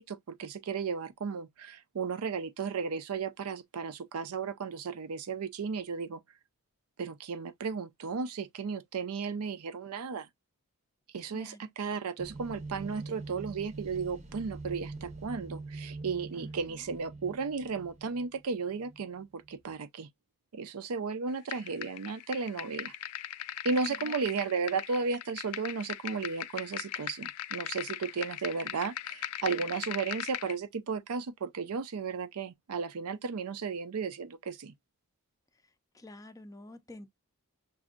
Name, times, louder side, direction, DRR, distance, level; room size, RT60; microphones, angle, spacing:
voice 1, 0.0-6.2 7.0-10.3 11.1-20.1 20.5-22.9 23.6-34.7, right 5 dB, 75° right, 0.5 m, -34 dB
voice 2, 11.3-11.7 16.4-16.8 23.8-24.1 35.9-37.1, left 1 dB, 15° left, 0.4 m, -49 dB
sound 1, 12.2-19.7, right 3 dB, 30° right, 0.7 m, -44 dB
sound 2, 21.5-30.5, left 12 dB, 75° left, 0.4 m, -39 dB
6.1 x 2.6 x 2.4 m
head